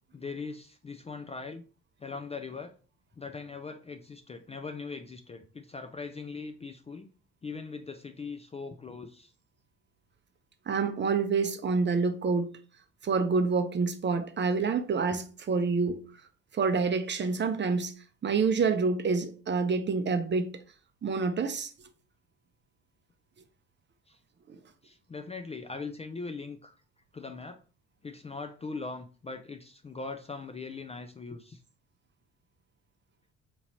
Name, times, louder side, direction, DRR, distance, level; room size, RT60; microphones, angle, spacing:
voice 1, 0.1-1.6 2.0-2.7 3.2-7.1 7.4-9.3 24.8-26.8 27.1-27.6 28.0-31.6, left 4 dB, 20° left, 0.4 m, -40 dB
voice 2, 10.7-12.5 13.0-16.0 16.5-17.9 18.2-20.5 21.0-21.7 24.5-24.6, right 4 dB, 35° right, 0.6 m, -27 dB
3.8 x 3.0 x 2.9 m
hypercardioid pair, 55°, 34 cm